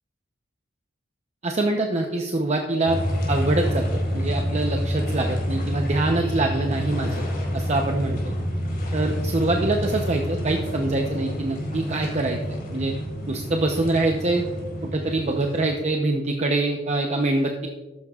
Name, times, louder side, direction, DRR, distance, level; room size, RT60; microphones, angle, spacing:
voice 1, 1.4-3.0 3.3-7.2 7.5-8.3 8.9-12.4 12.7-12.9 13.3-14.4 14.9-17.7, right 2 dB, 35° right, 2 dB, 0.8 m, -24 dB
sound 1, 2.9-15.7, equal, 50° left, 4.0 m, -28 dB
14.0 x 12.0 x 2.4 m, 1.2 s
head